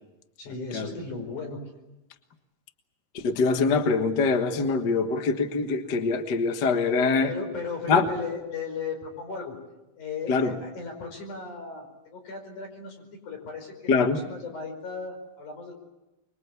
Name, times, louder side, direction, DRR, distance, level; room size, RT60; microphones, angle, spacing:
voice 1, 0.4-1.6 7.3-9.6 10.0-15.7, left 4 dB, 70° left, 4 dB, 6.6 m, -36 dB
voice 2, 3.1-7.3 7.9-8.0 10.3-10.5 13.9-14.2, left 4 dB, 45° left, 6 dB, 1.6 m, -23 dB
25.5 x 23.0 x 8.3 m, 0.99 s
omnidirectional pair, 3.7 m